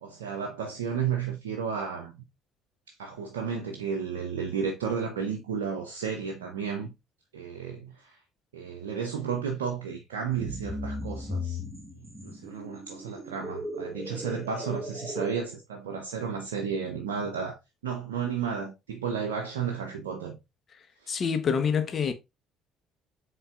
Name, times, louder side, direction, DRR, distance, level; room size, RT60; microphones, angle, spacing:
voice 1, 0.0-2.2 3.0-6.9 7.3-8.2 8.5-11.6 12.2-20.4, right 6 dB, 85° right, 0.6 m, -33 dB
sound 1, 10.3-15.4, left 1 dB, 15° right, 1.8 m, -37 dB
voice 2, 21.1-22.1, left 6 dB, 45° left, 0.8 m, -26 dB
5.4 x 3.7 x 2.4 m
hypercardioid pair, 60°, 0 cm